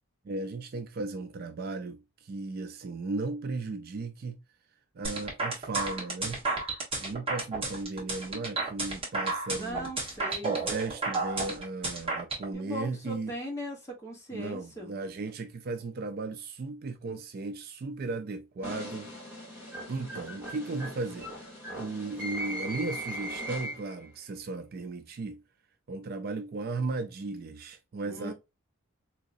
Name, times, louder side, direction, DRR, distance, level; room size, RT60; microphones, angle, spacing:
voice 1, 0.2-4.4 5.0-6.4 7.0-9.9 10.4-13.3 14.3-19.1 19.9-25.4 25.9-28.3, right 3 dB, 45° right, 0.3 m, -36 dB
sound 1, 5.0-12.4, right 3 dB, 25° right, 1.2 m, -31 dB
voice 2, 9.5-10.6 12.5-14.9 28.1-28.3, equal, 15° left, 1.1 m, -39 dB
sound 2, 18.6-24.1, equal, 10° right, 1.8 m, -39 dB
3.7 x 2.9 x 2.5 m
head